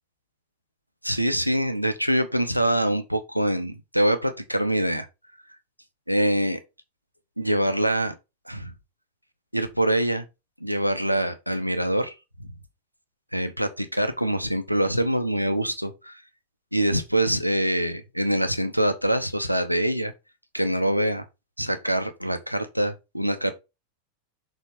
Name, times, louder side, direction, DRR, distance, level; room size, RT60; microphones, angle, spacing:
voice 1, 1.0-5.1 6.1-6.6 7.4-8.1 8.5-8.7 9.5-10.2 10.6-12.1 13.3-16.2 16.7-20.1 20.5-21.2 21.6-23.5, right 1 dB, 90° right, 0.9 m, -24 dB
6.4 x 4.1 x 5.1 m
figure-of-eight pair, 90°, 0 cm